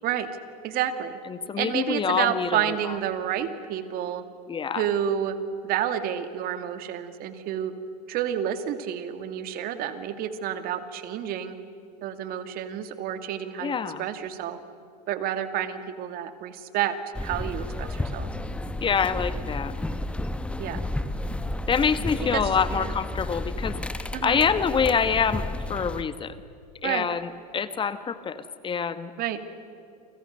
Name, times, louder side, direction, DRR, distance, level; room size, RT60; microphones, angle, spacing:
voice 1, 0.6-1.2 1.6-4.2 4.8-5.4 5.6-7.7 8.1-11.6 12.0-14.6 15.1-16.9 17.2-18.3 20.6-20.8 22.3-22.4 22.7-22.9 24.1-24.4 26.8-27.1 29.2-29.4, right 10 dB, 45° right, 10 dB, 2.4 m, -29 dB
voice 2, 1.3-3.0 4.5-4.9 13.6-14.0 18.8-19.7 21.7-26.3 26.8-27.2 27.5-29.1, left 6 dB, 25° left, 12 dB, 1.3 m, -26 dB
sound 1, 17.2-26.0, left 1 dB, 5° left, 1.3 m, -32 dB
29.5 x 26.0 x 6.7 m, 2.5 s
hypercardioid pair, 105°, 21 cm